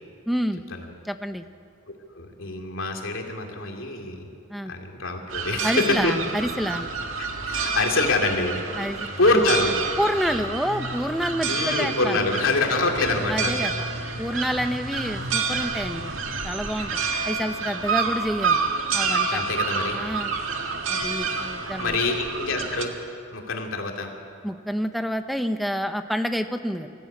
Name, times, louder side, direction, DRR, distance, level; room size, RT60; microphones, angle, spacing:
voice 1, 0.3-0.6 1.0-1.4 4.5-4.7 5.6-6.9 8.8-9.4 10.0-12.2 13.3-13.9 14.2-16.1 16.4-17.0 17.3-19.4 19.9-20.3 20.9-22.0 24.4-26.9, equal, ahead, 7 dB, 0.7 m, -28 dB
voice 2, 2.1-4.3 4.7-6.1 7.2-8.6 9.2-9.7 11.4-13.5 19.3-20.0 21.8-22.9 23.3-24.1, left 2 dB, 75° left, 2 dB, 2.9 m, -25 dB
sound 1, 5.3-22.8, right 4 dB, 70° right, 2.0 m, -28 dB
23.5 x 15.0 x 8.6 m, 2.3 s
head